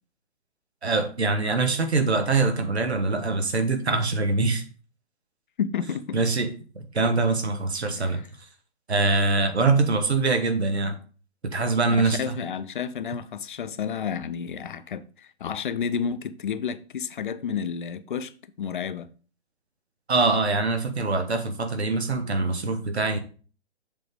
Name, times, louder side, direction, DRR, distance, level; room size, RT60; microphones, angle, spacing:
voice 1, 0.8-4.6 6.1-8.2 8.9-11.0 11.4-12.4 20.1-23.2, right 3 dB, 75° right, 1.2 m, -24 dB
voice 2, 5.6-6.2 8.0-8.3 12.0-19.1, left 7 dB, 50° left, 0.6 m, -31 dB
7.4 x 3.8 x 4.8 m
figure-of-eight pair, 130°, 33 cm